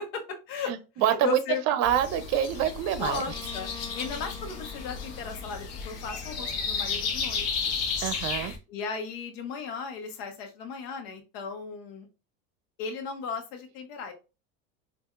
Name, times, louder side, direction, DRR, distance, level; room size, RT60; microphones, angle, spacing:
voice 1, 0.0-0.7 1.1-1.6 2.9-3.7 3.9-7.8 8.7-12.1 12.8-14.1, left 5 dB, 75° left, 1.0 m, -36 dB
voice 2, 0.7-1.4 1.7-3.3 8.0-8.5, right 10 dB, 55° right, 0.6 m, -26 dB
sound 1, 1.8-8.6, left 5 dB, 50° left, 0.9 m, -33 dB
Bowed string instrument, 3.1-6.8, left 5 dB, 10° left, 1.0 m, -47 dB
4.3 x 2.5 x 2.4 m
supercardioid pair, 100°, 32 cm